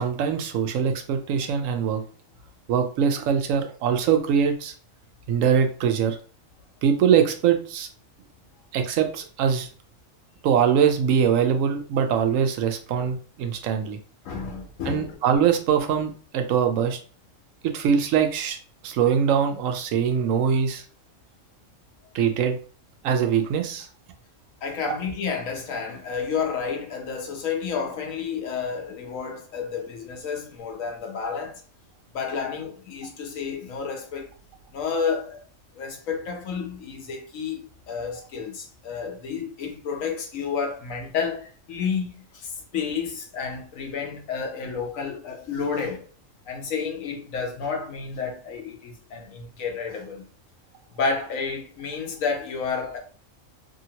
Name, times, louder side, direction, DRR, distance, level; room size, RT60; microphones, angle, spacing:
voice 1, 0.0-2.0 2.7-4.7 5.3-6.2 6.8-7.9 8.7-9.7 10.4-14.0 14.9-17.0 17.6-18.6 18.8-20.8 22.1-22.6 23.0-23.9, right 7 dB, 80° right, 0.9 m, -22 dB
voice 2, 14.2-15.2 24.6-31.6 32.1-34.3 34.7-35.4 35.7-46.1 46.5-50.2 50.9-53.0, left 5 dB, 85° left, 1.1 m, -30 dB
2.8 x 2.7 x 2.8 m
omnidirectional pair, 1.4 m